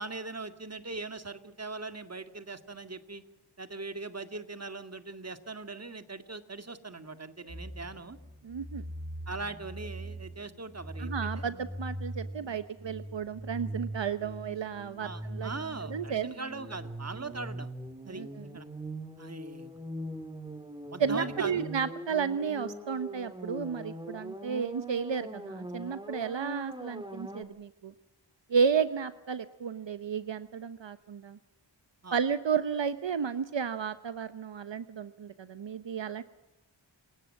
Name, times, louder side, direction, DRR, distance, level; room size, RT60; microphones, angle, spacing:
voice 1, 0.0-3.2 3.6-8.2 9.3-11.4 15.0-17.7 18.1-18.2 18.5-18.7 19.2-19.7 20.9-21.7 32.0-32.2, right 3 dB, 35° right, 9 dB, 2.1 m, -40 dB
sound 1, 7.5-27.4, right 1 dB, 10° right, 2.0 m, -41 dB
voice 2, 8.4-8.9 11.0-15.5 15.9-16.3 18.1-18.5 21.0-27.9 28.5-31.4 32.1-36.2, right 6 dB, 70° right, 12 dB, 1.0 m, -32 dB
27.5 x 17.5 x 7.4 m, 0.98 s
wide cardioid pair, 75°, 45 cm